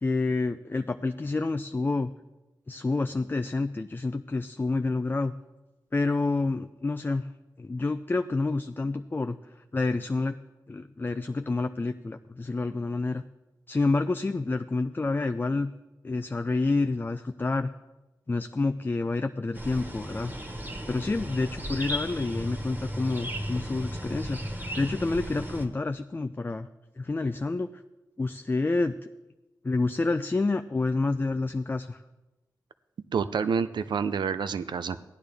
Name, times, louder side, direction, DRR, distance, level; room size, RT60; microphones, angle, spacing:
voice 1, 0.0-2.1 2.7-5.3 5.9-7.3 7.6-9.4 9.7-10.4 10.7-13.2 13.7-15.7 16.0-17.7 18.3-20.3 20.9-26.7 27.0-27.7 28.2-29.1 29.6-32.0, left 3 dB, 25° left, 8 dB, 0.4 m, -28 dB
sound 1, 19.5-25.7, equal, 25° right, 1.5 m, -35 dB
voice 2, 33.1-35.1, right 6 dB, 90° right, 13 dB, 0.4 m, -28 dB
15.5 x 10.5 x 3.4 m, 1.1 s
wide cardioid pair, 65°, 8 cm